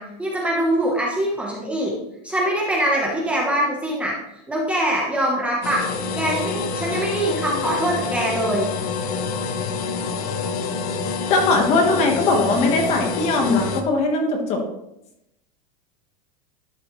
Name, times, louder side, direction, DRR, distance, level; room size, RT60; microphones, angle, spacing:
voice 1, 0.0-1.9 2.2-4.2 4.5-5.9 6.1-8.7, right 1 dB, 5° right, -3 dB, 1.1 m, -23 dB
sound 1, 5.6-13.8, left 5 dB, 65° left, 1.0 m, -27 dB
voice 2, 11.3-14.6, left 3 dB, 30° left, 3 dB, 1.4 m, -20 dB
11.5 x 6.1 x 3.2 m, 0.85 s
supercardioid pair, 170°, 20 cm